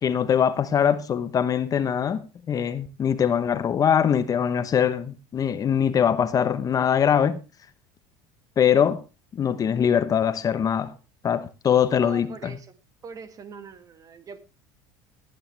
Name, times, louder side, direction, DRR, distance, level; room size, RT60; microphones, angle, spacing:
voice 1, 0.0-7.4 8.6-9.0 9.4-10.9 11.2-12.5, left 8 dB, 35° left, 1.0 m, -22 dB
voice 2, 12.0-14.4, right 5 dB, 35° right, 1.8 m, -42 dB
18.5 x 10.0 x 3.4 m
supercardioid pair, 110°, 11 cm